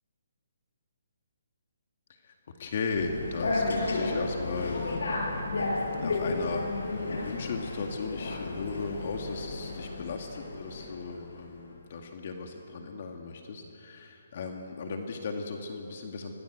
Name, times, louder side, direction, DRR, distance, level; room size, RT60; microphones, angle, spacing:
voice 1, 2.6-5.2 5.9-16.3, left 4 dB, 45° left, 3 dB, 2.1 m, -36 dB
sound 1, 2.9-11.3, left 2 dB, 80° left, 6.8 m, -32 dB
25.5 x 20.0 x 8.1 m, 2.8 s
hypercardioid pair, 165°, 0 cm